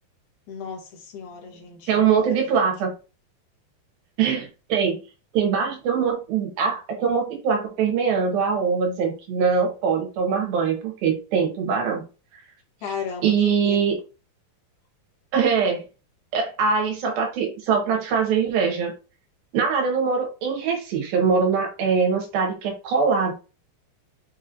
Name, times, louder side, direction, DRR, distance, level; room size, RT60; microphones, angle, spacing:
voice 1, 0.5-2.1 2.5-2.9 12.8-13.8, left 6 dB, 70° left, -1 dB, 2.3 m, -35 dB
voice 2, 1.9-2.9 4.2-5.0 5.3-12.0 13.2-14.0 15.3-15.8 16.3-18.9 19.5-23.3, right 6 dB, 80° right, 1 dB, 3.0 m, -22 dB
6.6 x 3.0 x 2.6 m, 0.33 s
omnidirectional pair, 4.2 m